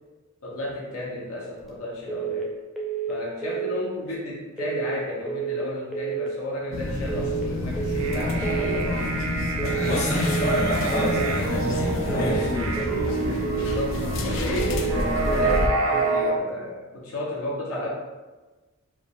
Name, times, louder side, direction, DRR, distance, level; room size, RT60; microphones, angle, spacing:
voice 1, 0.4-2.5 3.1-9.0 9.6-10.3 12.0-17.9, left 1 dB, 85° left, -5 dB, 0.9 m, -33 dB
sound 1, 2.1-2.5 2.8-3.2 3.4-3.8 4.6-5.0 5.3-5.7 5.9-6.3 7.1-7.5 7.8-8.2 8.4-8.8 9.6-10.0 10.3-10.7 10.9-11.3 12.1-12.5 12.8-13.2 13.4-13.8 14.6-15.0 15.3-15.7 15.9-16.3, right 7 dB, ahead, 0.5 m, -30 dB
sound 2, 6.7-15.7, left 1 dB, 60° left, 0.4 m, -28 dB
sound 3, 7.9-16.3, right 3 dB, 85° right, 0.6 m, -29 dB
voice 2, 9.8-12.4, equal, 45° left, -6 dB, 1.1 m, -27 dB
4.6 x 2.4 x 3.5 m, 1.2 s
head